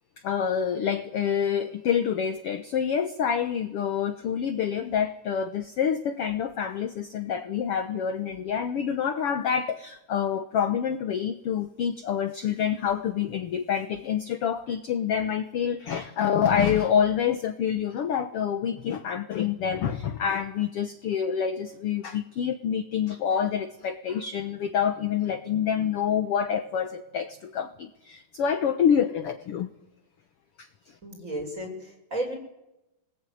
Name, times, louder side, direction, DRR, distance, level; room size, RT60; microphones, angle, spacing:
voice 1, 0.2-29.7 30.6-30.9, left 8 dB, 60° left, 8 dB, 1.6 m, -27 dB
voice 2, 31.0-32.4, right 1 dB, 20° right, 2 dB, 6.6 m, -33 dB
29.0 x 20.0 x 9.3 m, 0.92 s
omnidirectional pair, 3.9 m